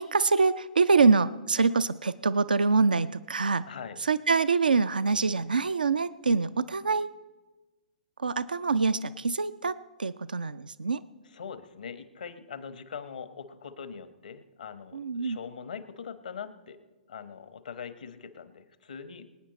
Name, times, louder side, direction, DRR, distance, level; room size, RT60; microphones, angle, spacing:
voice 1, 0.0-3.7 4.0-7.1 8.2-11.0 14.9-15.4, right 4 dB, 75° right, 14 dB, 0.5 m, -25 dB
voice 2, 3.7-4.0 11.3-16.8 17.1-19.3, left 6 dB, 65° left, 10 dB, 1.2 m, -42 dB
25.0 x 9.2 x 4.2 m, 1.2 s
figure-of-eight pair, 115°, 5 cm